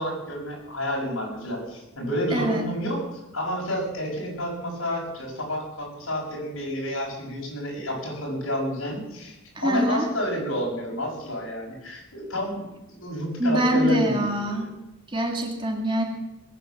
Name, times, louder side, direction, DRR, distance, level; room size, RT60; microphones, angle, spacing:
voice 1, 0.0-9.3 9.6-14.7, equal, 80° left, -1 dB, 6.5 m, -30 dB
voice 2, 2.3-2.7 9.6-10.1 13.4-14.7 15.1-16.0, equal, 25° right, 2 dB, 2.1 m, -24 dB
20.0 x 9.4 x 7.2 m, 0.92 s
head